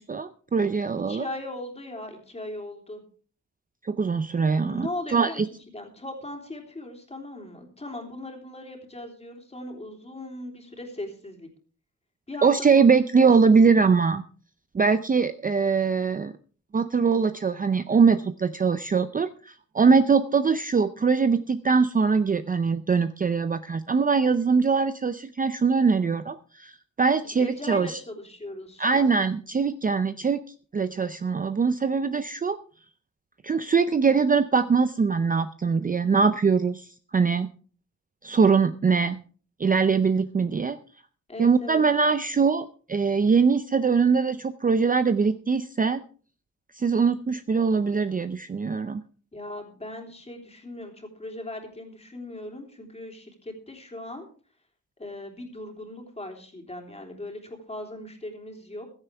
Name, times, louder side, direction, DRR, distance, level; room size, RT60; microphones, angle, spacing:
voice 1, 0.0-1.2 3.8-5.5 12.4-14.2 14.7-16.3 16.7-28.0 28.8-30.4 30.7-32.6 33.4-37.5 38.2-39.2 39.6-40.8 41.4-46.0 46.7-49.0, right 5 dB, 25° right, 11 dB, 0.5 m, -22 dB
voice 2, 1.1-3.0 4.6-5.4 5.7-11.5 12.3-13.3 27.2-29.2 41.3-41.8 49.3-54.3 55.0-58.9, left 1 dB, 20° left, 2 dB, 3.3 m, -39 dB
15.5 x 13.5 x 3.4 m, 0.42 s
wide cardioid pair, 150°, 31 cm